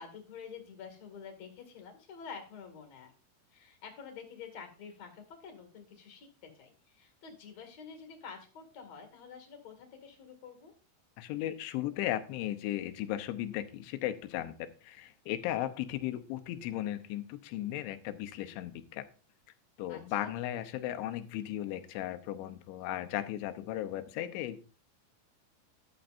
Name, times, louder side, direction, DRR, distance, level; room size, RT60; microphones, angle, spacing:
voice 1, 0.0-3.1 3.5-10.7 19.9-20.3, left 6 dB, 45° left, 4 dB, 2.9 m, -48 dB
voice 2, 11.2-19.1 19.8-24.6, left 13 dB, 90° left, 9 dB, 3.3 m, -36 dB
13.0 x 12.0 x 2.6 m, 0.38 s
omnidirectional pair, 5.2 m